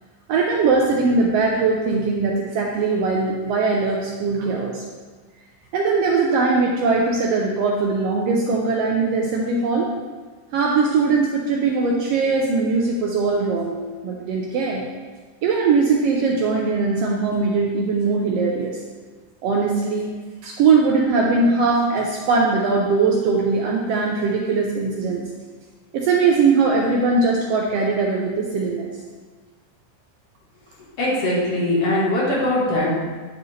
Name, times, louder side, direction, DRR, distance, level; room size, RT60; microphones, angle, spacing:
voice 1, 0.3-4.8 5.7-9.9 10.5-13.8 14.0-14.8 15.4-18.8 19.4-20.1 20.4-25.2 25.9-28.9, right 4 dB, 85° right, -1 dB, 1.4 m, -20 dB
voice 2, 31.0-32.9, left 1 dB, 55° left, -6 dB, 2.5 m, -21 dB
9.5 x 4.6 x 3.2 m, 1.4 s
omnidirectional pair, 3.5 m